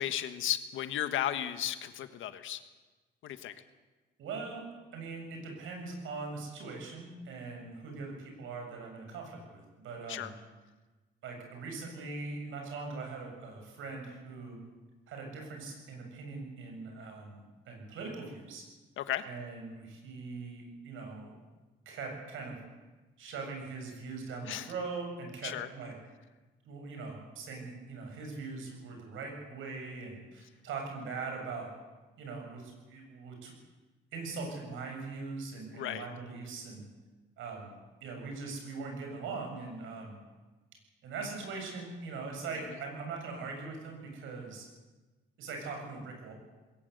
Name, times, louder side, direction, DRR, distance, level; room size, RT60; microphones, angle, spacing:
voice 1, 0.0-2.6 3.2-3.5 10.1-10.3 19.0-19.2 24.5-24.7 25.4-25.7 35.7-36.1, left 11 dB, 80° left, 10 dB, 1.6 m, -34 dB
voice 2, 4.2-4.6 4.9-10.3 11.2-14.6 15.1-18.6 19.2-21.4 21.9-22.6 23.2-25.9 26.6-31.7 32.2-33.5 34.1-36.8 37.4-40.2 41.0-44.7 45.4-46.3, right 4 dB, 85° right, 2 dB, 7.5 m, -41 dB
21.0 x 18.5 x 8.2 m, 1.2 s
cardioid pair, 90°, 20 cm